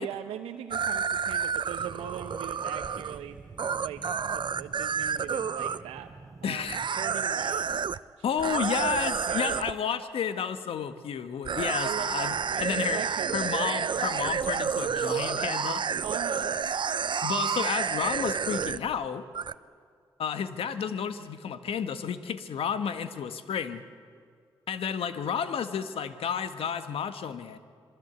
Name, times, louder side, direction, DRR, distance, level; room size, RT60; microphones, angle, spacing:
voice 1, 0.0-3.4 3.7-6.1 6.4-7.8 8.4-9.8 11.8-13.8 14.0-14.2 16.0-16.6, right 10 dB, 85° right, 5 dB, 0.9 m, -40 dB
sound 1, 0.7-5.8 6.7-8.0 8.4-9.7 11.4-19.0 19.3-19.5, right 6 dB, 55° right, 0.8 m, -30 dB
sound 2, 1.8-7.3, right 3 dB, 35° right, 1.3 m, -49 dB
voice 2, 6.4-6.8 8.2-13.0 13.3-15.8 17.2-19.2 20.2-23.8 24.7-27.6, left 7 dB, 70° left, 10 dB, 1.5 m, -31 dB
27.0 x 21.5 x 8.2 m, 2.2 s
supercardioid pair, 45°, 10 cm